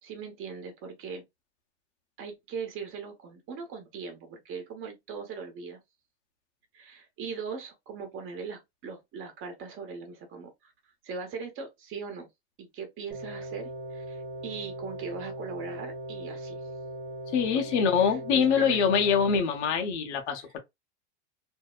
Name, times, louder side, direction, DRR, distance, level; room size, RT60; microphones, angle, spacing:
voice 1, 0.0-1.2 2.2-5.8 6.7-10.7 11.0-12.3 12.6-16.7 17.5-18.8, right 5 dB, 35° right, 1.0 m, -40 dB
sound 1, 13.1-19.4, right 1 dB, 15° right, 1.0 m, -39 dB
voice 2, 17.3-20.6, left 6 dB, 75° left, 0.9 m, -24 dB
2.7 x 2.1 x 2.4 m
supercardioid pair, 120°, 35 cm